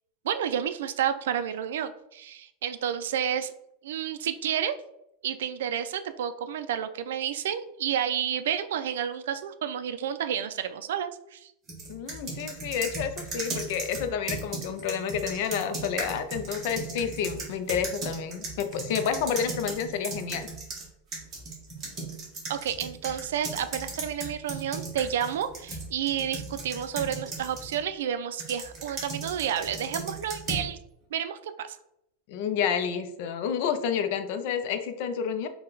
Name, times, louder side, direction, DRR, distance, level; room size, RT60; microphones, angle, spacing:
voice 1, 0.2-3.5 3.8-4.8 5.2-11.5 22.5-30.8 31.1-31.8, right 9 dB, 90° right, 11 dB, 0.3 m, -30 dB
sound 1, 11.7-20.8 21.1-27.8 28.4-30.7, right 3 dB, 20° right, 1.0 m, -37 dB
voice 2, 11.9-20.5 32.3-35.5, left 7 dB, 50° left, 8 dB, 0.4 m, -30 dB
3.8 x 2.2 x 3.9 m, 0.78 s
supercardioid pair, 175°, 0 cm